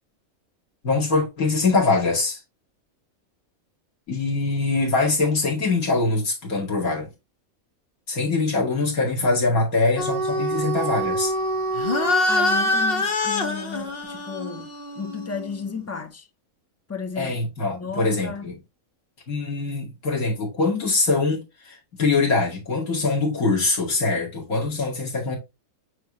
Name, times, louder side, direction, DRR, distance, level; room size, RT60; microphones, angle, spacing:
voice 1, 0.8-2.4 4.1-7.1 8.1-11.3 17.2-18.6 19.3-25.4, left 3 dB, 85° left, 2.8 m, -23 dB
sound 1, 10.0-15.8, left 1 dB, 45° left, 1.2 m, -25 dB
voice 2, 12.3-16.3 16.9-18.5, left 5 dB, 15° left, 0.6 m, -34 dB
9.0 x 3.4 x 3.0 m
omnidirectional pair, 1.5 m